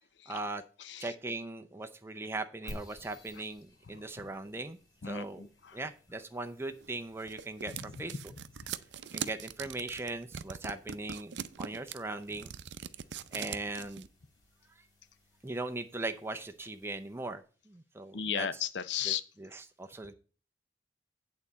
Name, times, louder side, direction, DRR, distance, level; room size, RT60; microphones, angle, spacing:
voice 1, 0.3-0.6 1.0-4.8 5.1-5.5 5.7-8.1 9.1-11.3 11.6-12.5 13.3-14.1 15.4-17.4 17.7-18.5 19.1-19.2 19.5-20.1, right 2 dB, 15° right, 0.5 m, -39 dB
voice 2, 0.8-1.1 3.9-4.3 5.0-5.9 8.0-8.1 8.6-8.7 18.1-19.2, left 8 dB, 80° left, 0.7 m, -36 dB
sound 1, 2.7-17.4, equal, 20° left, 2.1 m, -56 dB
sound 2, 6.8-14.1, right 8 dB, 75° right, 0.5 m, -41 dB
8.7 x 4.1 x 7.2 m
head